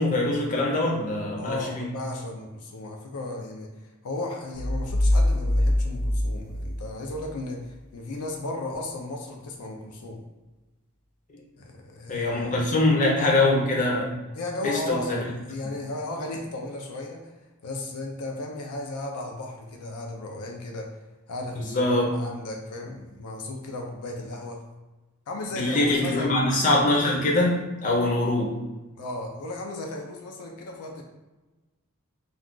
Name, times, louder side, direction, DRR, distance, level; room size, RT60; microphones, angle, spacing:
voice 1, 0.0-1.9 12.1-14.1 14.6-15.2 21.7-22.1 25.5-28.6, left 2 dB, 35° left, -2 dB, 0.6 m, -23 dB
voice 2, 1.4-3.7 4.0-10.2 11.6-12.5 14.3-17.3 17.6-20.9 21.3-24.6 25.3-26.3 28.9-31.0, left 2 dB, 80° left, 1 dB, 0.5 m, -35 dB
sound 1, 4.5-7.4, left 1 dB, 80° right, 0.6 m, -24 dB
2.4 x 2.3 x 3.7 m, 1.1 s
head